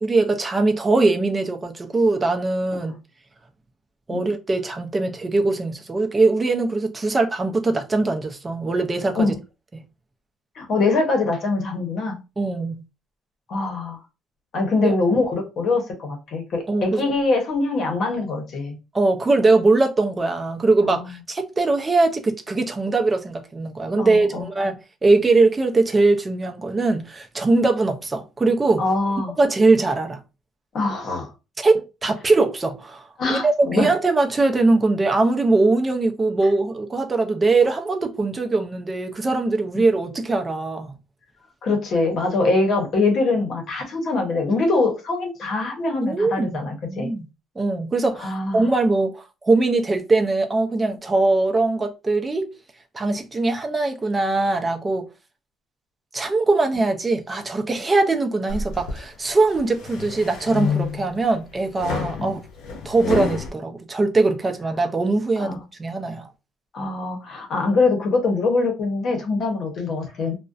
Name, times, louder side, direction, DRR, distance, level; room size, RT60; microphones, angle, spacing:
voice 1, 0.0-2.9 4.1-9.3 9.7-9.8 12.4-12.8 14.8-14.9 16.7-17.1 18.9-28.8 29.4-30.2 31.6-40.9 46.0-46.6 46.9-47.3 47.6-52.5 52.9-55.1 56.1-62.4 62.8-66.3, right 3 dB, 20° right, 0.4 m, -21 dB
voice 2, 10.6-12.2 13.5-14.0 14.5-18.8 20.8-21.1 24.0-24.5 28.8-29.3 30.7-31.3 33.2-33.9 39.7-39.8 41.6-47.1 48.2-48.7 65.4-65.6 66.7-70.3, left 3 dB, 55° left, 0.8 m, -23 dB
sound 1, 58.5-59.0 59.6-61.2 61.8-63.5, left 5 dB, 90° left, 0.6 m, -28 dB
2.4 x 2.1 x 2.4 m
cardioid pair, 120°, 0 cm